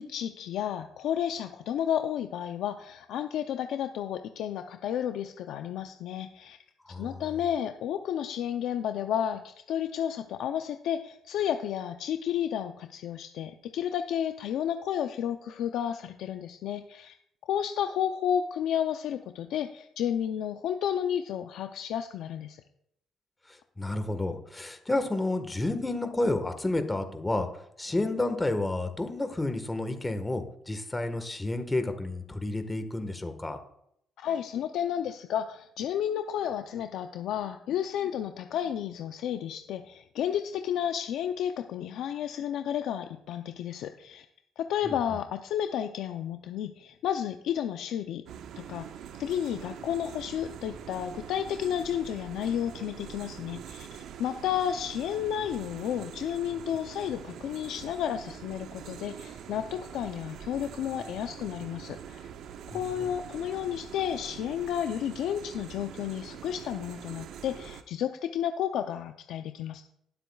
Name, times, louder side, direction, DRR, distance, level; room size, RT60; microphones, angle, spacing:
voice 1, 0.0-6.6 7.0-17.1 17.5-22.6 34.2-44.3 44.6-48.2 48.6-48.9 49.2-53.9 54.2-62.3 62.7-69.8, left 9 dB, 80° left, 7 dB, 0.5 m, -32 dB
voice 2, 6.8-7.2 23.5-33.6 44.8-45.2 62.7-63.1, left 2 dB, 20° left, 8 dB, 1.4 m, -31 dB
sound 1, 48.3-67.8, right 8 dB, 75° right, 0.6 m, -44 dB
19.5 x 7.8 x 2.4 m, 0.74 s
supercardioid pair, 70°, 0 cm